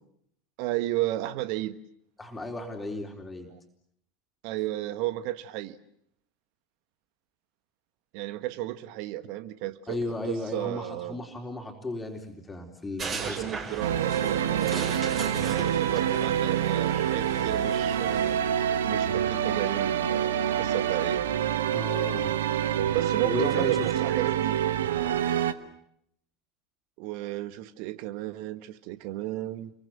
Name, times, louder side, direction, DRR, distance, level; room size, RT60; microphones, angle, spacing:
voice 1, 0.6-1.8 3.5-3.6 4.4-5.8 8.1-11.2 13.2-14.8 15.4-18.4 18.9-21.2 22.9-24.6 27.0-29.7, right 16 dB, 50° right, 1.5 m, -33 dB
voice 2, 2.2-3.5 9.9-13.4 21.7-22.4 23.2-23.9, left 2 dB, 10° left, 4.0 m, -35 dB
sound 1, 13.0-18.4, right 4 dB, 30° right, 7.2 m, -37 dB
sound 2, 13.8-25.5, right 10 dB, 65° right, 1.3 m, -26 dB
30.0 x 23.5 x 7.6 m
figure-of-eight pair, 80°, 0 cm